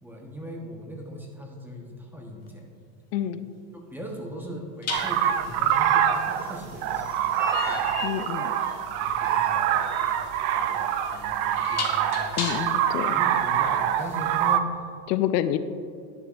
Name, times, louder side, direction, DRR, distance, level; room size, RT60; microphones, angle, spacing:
voice 1, 0.0-2.7 3.9-8.0 8.6-10.1 10.5-12.7 13.1-14.8, equal, 5° right, 0 dB, 1.2 m, -40 dB
sound 1, 2.4-2.6 4.8-12.9, left 5 dB, 30° left, 1.5 m, -37 dB
voice 2, 3.1-3.5 8.0-8.5 12.3-13.2 15.1-15.6, left 12 dB, 80° left, 12 dB, 0.6 m, -27 dB
sound 2, 4.9-14.6, right 9 dB, 55° right, 0.6 m, -25 dB
10.5 x 7.1 x 2.6 m, 2.3 s
supercardioid pair, 110°, 48 cm